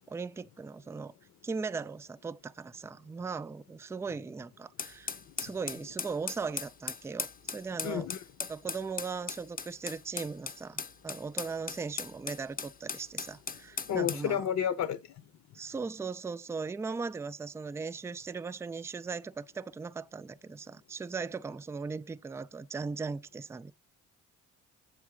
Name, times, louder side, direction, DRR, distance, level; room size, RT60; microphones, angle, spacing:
voice 1, 0.1-1.1 1.4-7.3 7.5-8.1 8.5-14.5 15.5-23.7, right 4 dB, 10° right, 0.3 m, -38 dB
sound 1, 4.8-14.3, left 5 dB, 30° left, 0.7 m, -38 dB
voice 2, 7.8-8.2 13.9-15.0, left 9 dB, 65° left, 0.8 m, -30 dB
7.2 x 3.6 x 6.4 m
cardioid pair, 90°, 30 cm